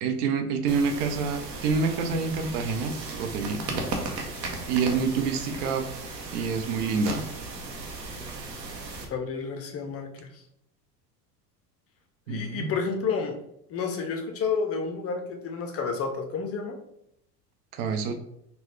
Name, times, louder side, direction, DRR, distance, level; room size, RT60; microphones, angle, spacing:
voice 1, 0.0-3.9 4.7-5.9 6.3-7.2 12.3-12.7 17.7-18.2, right 5 dB, 65° right, 6 dB, 0.7 m, -27 dB
sound 1, 0.7-9.1, right 3 dB, 90° right, 0.9 m, -36 dB
voice 2, 9.1-10.4 12.3-13.4 13.7-16.8, left 5 dB, 30° left, 4 dB, 0.5 m, -30 dB
3.9 x 2.3 x 3.2 m, 0.75 s
hypercardioid pair, 90°, 49 cm